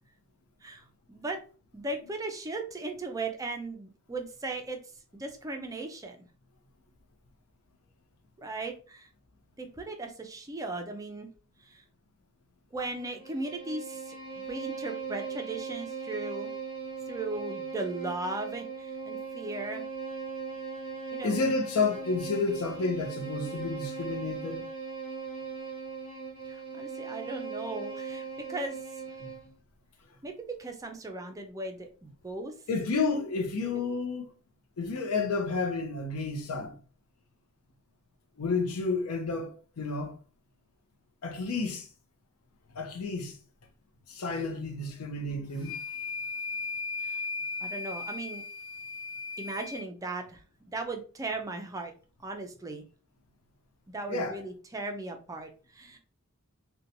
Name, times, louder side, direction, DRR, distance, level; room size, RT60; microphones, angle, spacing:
voice 1, 0.6-1.4 1.7-4.8 5.1-6.2 8.4-9.1 9.6-11.3 11.7-11.8 12.7-16.5 17.1-19.9 21.1-21.4 26.5-28.2 28.5-28.8 30.2-32.5 33.6-33.7 47.0-47.3 47.6-48.4 49.4-50.4 50.7-51.9 52.2-52.8 53.9-56.0, right 2 dB, 15° right, 0.4 m, -37 dB
Bowed string instrument, 12.9-29.5, right 5 dB, 40° left, 1.4 m, -39 dB
voice 2, 21.2-24.6 32.7-34.3 34.8-36.8 38.4-40.1 41.2-41.9 42.8-43.3 44.1-45.8 54.1-54.4, left 4 dB, 75° left, 0.5 m, -31 dB
sound 1, 45.6-49.8, left 4 dB, 20° left, 0.9 m, -36 dB
2.8 x 2.2 x 2.5 m
head